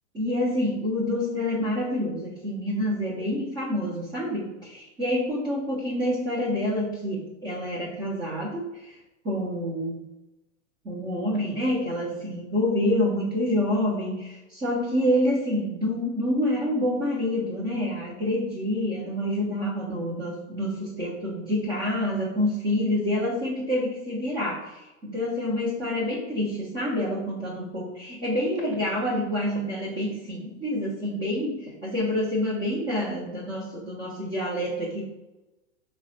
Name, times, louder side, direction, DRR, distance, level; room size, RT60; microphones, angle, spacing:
voice 1, 0.1-9.0 9.2-10.0 10.8-35.0, left 1 dB, 10° right, -6 dB, 0.3 m, -27 dB
3.8 x 2.1 x 2.5 m, 1.0 s
hypercardioid pair, 120°, 38 cm